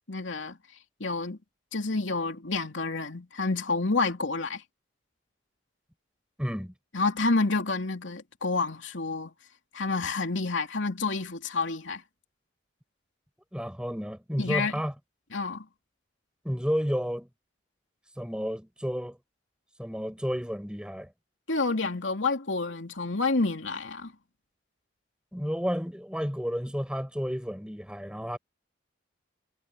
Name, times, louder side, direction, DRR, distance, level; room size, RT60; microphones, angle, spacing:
voice 1, 0.1-0.6 1.0-1.4 1.7-4.6 6.9-9.3 9.7-12.0 14.4-14.8 15.3-15.7 21.5-24.1, left 3 dB, 85° left, 2.8 m, -29 dB
voice 2, 6.4-6.7 13.5-14.9 16.4-17.3 18.2-19.2 19.8-21.1 25.3-28.4, equal, 5° right, 7.2 m, -31 dB
head